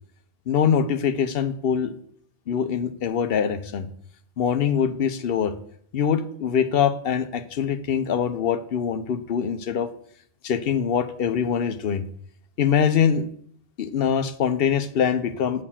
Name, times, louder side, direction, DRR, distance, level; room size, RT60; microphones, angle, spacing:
voice 1, 0.5-1.9 2.5-3.9 4.4-5.5 5.9-9.9 10.4-12.0 12.6-13.2 13.8-15.6, left 7 dB, 60° left, 10 dB, 0.9 m, -23 dB
8.5 x 4.5 x 7.2 m, 0.63 s
omnidirectional pair, 1.1 m